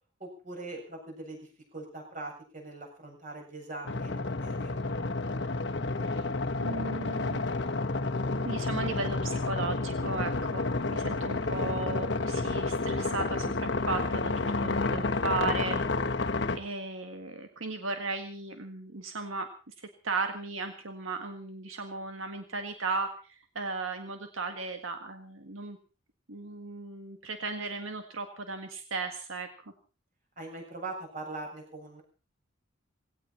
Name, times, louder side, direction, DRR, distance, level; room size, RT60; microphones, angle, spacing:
voice 1, 0.2-1.5 1.7-4.8 30.4-32.0, right 2 dB, 40° right, 1 dB, 7.6 m, -41 dB
sound 1, 3.8-16.6, left 3 dB, 60° left, 1.2 m, -30 dB
voice 2, 6.6-7.5 8.4-15.8 16.5-25.8 26.3-29.7, right 3 dB, 85° right, 6 dB, 1.7 m, -36 dB
19.0 x 17.5 x 4.4 m, 0.36 s
head